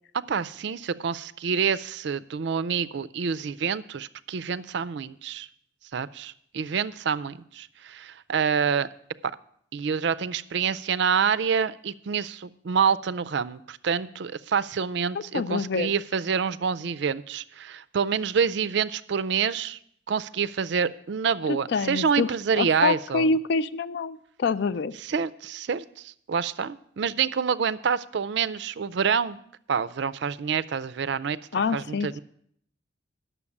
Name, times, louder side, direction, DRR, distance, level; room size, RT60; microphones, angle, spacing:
voice 1, 0.3-5.5 5.9-8.9 9.7-19.8 20.1-23.3 25.0-29.4 29.7-31.4 31.7-32.2, right 6 dB, 60° right, 15 dB, 0.4 m, -27 dB
voice 2, 15.1-15.9 21.7-24.9 31.5-32.2, left 4 dB, 55° left, 15 dB, 0.4 m, -26 dB
9.8 x 6.9 x 7.1 m, 0.67 s
head